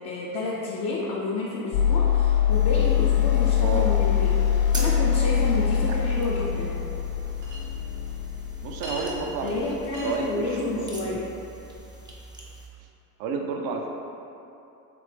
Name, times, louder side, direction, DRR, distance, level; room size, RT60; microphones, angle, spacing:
voice 1, 0.0-6.7 9.4-11.3, left 2 dB, 35° left, -5 dB, 0.6 m, -30 dB
sound 1, 1.7-9.8, left 9 dB, 80° left, 0.5 m, -23 dB
sound 2, 2.5-12.7, right 2 dB, 10° right, 0.4 m, -43 dB
Chink clink, 7.4-7.6 8.8-9.1 9.9-10.1, equal, 80° right, 1.4 m, -37 dB
voice 2, 8.6-9.8 10.0-11.2 13.2-13.9, right 4 dB, 50° right, 2 dB, 0.6 m, -30 dB
3.4 x 3.3 x 3.2 m, 2.8 s
supercardioid pair, 90°, 48 cm